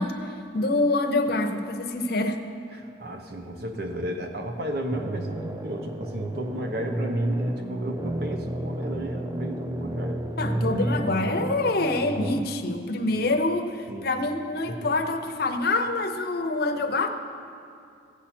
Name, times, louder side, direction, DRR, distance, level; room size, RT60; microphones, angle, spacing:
voice 1, 0.0-2.4 10.4-17.1, left 2 dB, 55° left, 6 dB, 0.7 m, -26 dB
voice 2, 2.7-10.2 10.9-11.1 13.9-14.1 14.7-14.9, right 1 dB, 55° right, 4 dB, 0.9 m, -34 dB
sound 1, 4.9-12.4, right 1 dB, 20° right, 0.5 m, -31 dB
16.0 x 7.5 x 4.4 m, 2.4 s
head